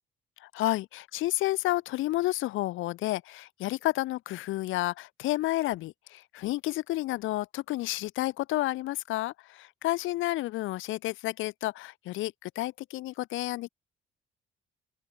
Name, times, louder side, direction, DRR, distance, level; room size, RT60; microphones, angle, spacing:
voice 1, 0.4-13.7, left 17 dB, 80° left, 1.3 m, -31 dB
open air
supercardioid pair, 60°, 20 cm